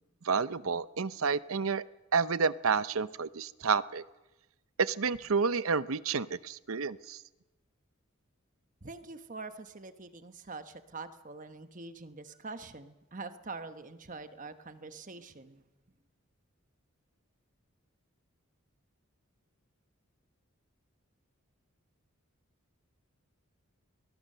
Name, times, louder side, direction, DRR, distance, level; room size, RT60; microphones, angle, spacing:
voice 1, 0.2-1.8 2.1-4.0 4.8-7.2, right 5 dB, 75° right, 16 dB, 0.7 m, -30 dB
voice 2, 8.8-15.6, right 3 dB, 35° right, 10 dB, 1.1 m, -45 dB
23.5 x 20.5 x 6.7 m, 1.1 s
head